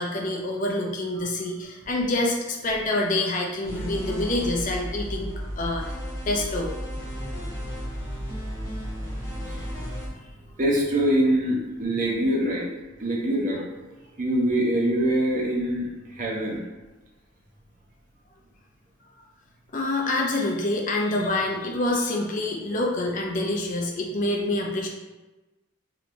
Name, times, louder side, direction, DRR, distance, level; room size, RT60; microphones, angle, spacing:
voice 1, 0.0-5.8 6.3-6.7 19.7-24.9, left 2 dB, 40° left, 0 dB, 0.4 m, -26 dB
sound 1, 3.6-10.1, equal, 15° left, 1.1 m, -33 dB
voice 2, 10.6-12.7 13.0-13.6 14.2-16.6, right 1 dB, 35° right, -2 dB, 0.6 m, -24 dB
3.1 x 2.9 x 2.6 m, 1.1 s
head